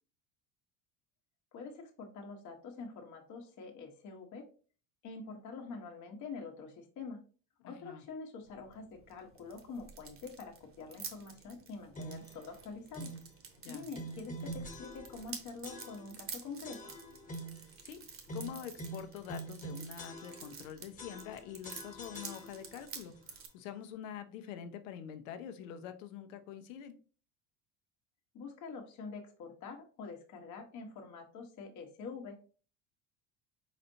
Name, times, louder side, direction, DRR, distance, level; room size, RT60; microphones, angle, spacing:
voice 1, 1.5-4.5 5.0-7.2 7.6-13.1 13.7-16.9 28.3-32.4, left 4 dB, 50° left, 2 dB, 1.1 m, -46 dB
voice 2, 7.6-8.0 13.6-13.9 17.8-18.0 18.3-27.0, left 9 dB, 85° left, 9 dB, 0.8 m, -46 dB
sound 1, 8.4-23.5, right 5 dB, 35° right, 1.1 m, -50 dB
sound 2, 11.9-12.4 12.9-13.3 13.9-15.3 15.6-16.3 16.6-17.7 18.3-20.7 21.0-22.9, right 2 dB, 20° left, 1.1 m, -45 dB
4.3 x 4.1 x 2.7 m, 0.38 s
supercardioid pair, 95°, 38 cm